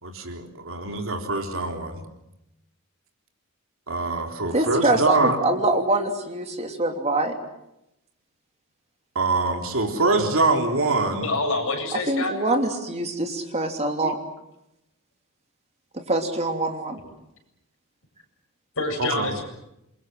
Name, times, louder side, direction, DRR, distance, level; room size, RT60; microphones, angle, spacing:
voice 1, 0.0-2.0 3.9-5.4 9.2-11.3 14.0-14.1 19.0-19.3, right 3 dB, 65° right, 4 dB, 3.7 m, -24 dB
voice 2, 4.5-7.4 12.1-14.2 15.9-17.0, right 2 dB, 30° right, 5 dB, 3.0 m, -24 dB
voice 3, 11.2-12.3 18.8-19.4, left 2 dB, 65° left, 3 dB, 7.9 m, -26 dB
28.0 x 23.5 x 7.7 m, 0.86 s
head